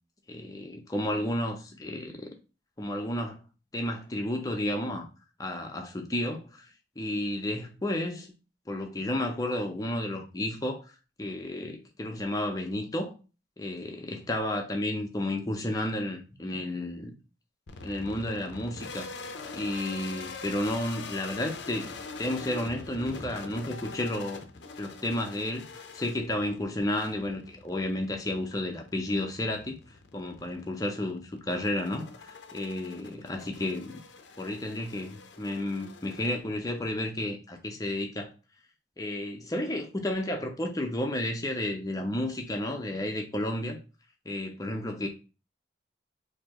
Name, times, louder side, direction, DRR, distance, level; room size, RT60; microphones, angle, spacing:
voice 1, 0.3-2.3 2.8-3.5 3.7-5.1 5.4-6.7 7.0-8.3 8.7-10.8 11.2-13.1 13.6-17.1 17.8-19.1 19.5-24.4 24.8-25.7 25.9-29.8 30.1-34.0 34.4-38.3 39.0-43.8 44.3-45.1, left 1 dB, 20° left, 0.6 m, -32 dB
sound 1, 17.7-36.9, left 4 dB, 65° left, 0.6 m, -44 dB
4.2 x 2.8 x 2.9 m
head